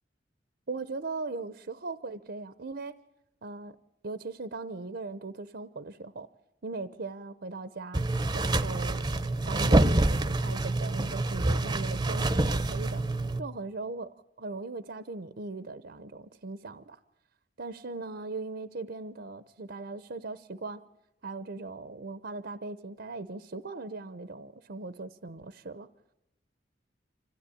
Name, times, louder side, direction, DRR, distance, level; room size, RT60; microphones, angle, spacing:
voice 1, 0.7-2.9 3.4-3.8 4.0-6.3 6.6-8.0 8.3-9.1 9.5-13.0 13.4-14.1 14.4-17.0 17.6-20.8 21.2-25.9, right 3 dB, 60° right, 14 dB, 0.8 m, -39 dB
sound 1, 7.9-13.4, right 2 dB, 25° right, 0.8 m, -26 dB
26.0 x 15.5 x 9.9 m, 0.91 s
head